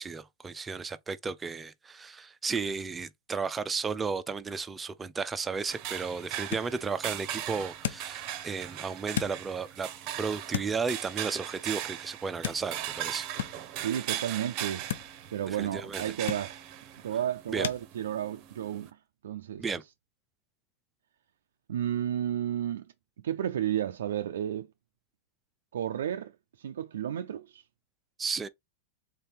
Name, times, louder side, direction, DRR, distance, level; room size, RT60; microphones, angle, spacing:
voice 1, 0.0-9.9 10.2-13.3 15.5-16.0 17.5-17.7 19.6-19.8 28.2-28.5, right 5 dB, 15° right, 0.4 m, -34 dB
sound 1, 5.3-17.8, left 10 dB, 75° left, 0.5 m, -41 dB
sound 2, 5.7-18.9, right 12 dB, 45° right, 0.7 m, -39 dB
voice 2, 13.7-14.9 15.3-16.6 17.0-18.9 19.2-19.7 21.7-22.9 23.2-24.7 25.7-26.3 26.6-27.6, right 10 dB, 80° right, 0.3 m, -32 dB
3.8 x 2.7 x 3.4 m
hypercardioid pair, 120°, 0 cm